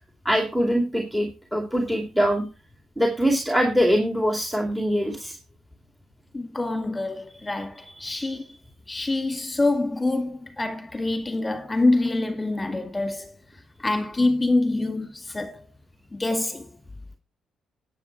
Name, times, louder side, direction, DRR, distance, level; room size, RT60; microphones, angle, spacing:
voice 1, 0.2-2.4 3.0-5.4 8.2-8.3, equal, 5° right, 2.5 m, -23 dB
voice 2, 6.3-8.5 8.9-13.3 13.8-15.7 16.1-16.7, left 2 dB, 20° left, 2.2 m, -25 dB
11.5 x 8.5 x 4.6 m
cardioid pair, 90°, 0 cm